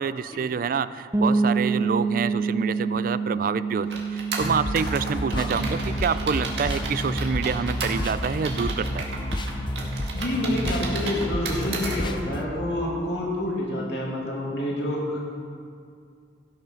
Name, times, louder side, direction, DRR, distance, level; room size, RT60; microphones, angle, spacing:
voice 1, 0.0-9.1, right 6 dB, 50° right, 15 dB, 0.3 m, -27 dB
sound 1, 1.1-10.8, right 4 dB, 15° right, 0.7 m, -29 dB
sound 2, 3.9-12.0, right 3 dB, 75° right, 1.9 m, -34 dB
sound 3, 4.4-12.5, left 1 dB, 25° left, 0.6 m, -31 dB
voice 2, 10.1-15.2, left 1 dB, 75° left, -3 dB, 2.5 m, -28 dB
16.0 x 6.6 x 5.8 m, 2.3 s
head